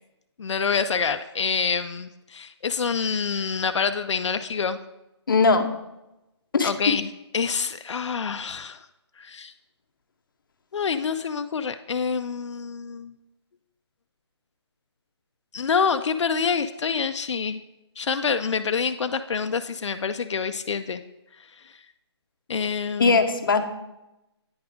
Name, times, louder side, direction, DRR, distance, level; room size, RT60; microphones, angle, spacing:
voice 1, 0.4-4.8 6.6-8.8 9.2-9.5 10.7-13.1 15.5-17.6 18.0-21.0 22.5-23.2, left 6 dB, 85° left, 9 dB, 0.4 m, -26 dB
voice 2, 5.3-5.7 6.5-6.7 23.0-23.6, left 4 dB, 50° left, 6 dB, 0.7 m, -19 dB
9.5 x 3.6 x 5.0 m, 0.94 s
hypercardioid pair, 170°, 15 cm